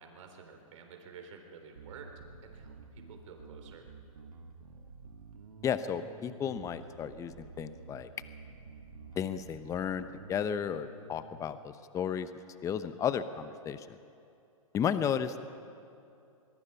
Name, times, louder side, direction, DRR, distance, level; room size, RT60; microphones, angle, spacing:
voice 1, 0.0-2.1 2.4-3.9 15.0-15.1, right 6 dB, 60° right, 4 dB, 3.7 m, -51 dB
Bass guitar, 1.8-11.3, right 4 dB, 80° right, 2.0 m, -51 dB
voice 2, 5.6-8.1 9.2-12.3 12.6-14.0 14.7-15.4, left 8 dB, 15° left, 12 dB, 0.8 m, -33 dB
23.0 x 21.5 x 5.8 m, 2.6 s
hypercardioid pair, 130°, 19 cm